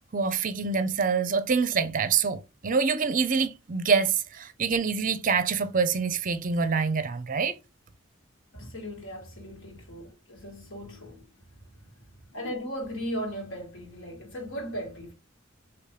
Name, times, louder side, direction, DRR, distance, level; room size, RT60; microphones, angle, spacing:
voice 1, 0.1-7.6, right 5 dB, 40° right, 0.5 m, -26 dB
voice 2, 8.5-11.5 11.7-12.0 12.3-15.1, equal, 65° left, 1.8 m, -37 dB
5.0 x 3.0 x 3.3 m
head